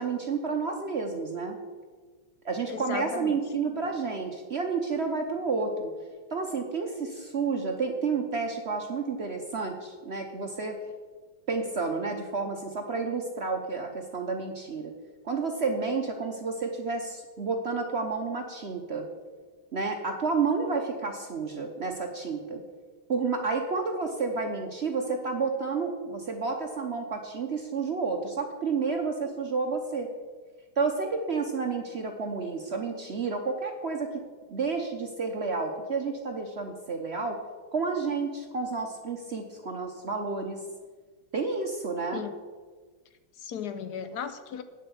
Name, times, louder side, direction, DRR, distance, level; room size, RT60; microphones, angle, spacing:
voice 1, 0.0-1.6 2.4-5.9 6.3-10.8 11.5-14.9 15.2-19.1 19.7-22.6 23.1-30.1 30.8-34.2 34.5-37.4 37.7-40.6 41.3-42.2, right 4 dB, 60° right, 4 dB, 0.6 m, -30 dB
voice 2, 2.7-3.4 42.1-42.3 43.4-44.6, left 7 dB, 70° left, 10 dB, 1.0 m, -36 dB
9.0 x 7.6 x 7.0 m, 1.5 s
omnidirectional pair, 2.2 m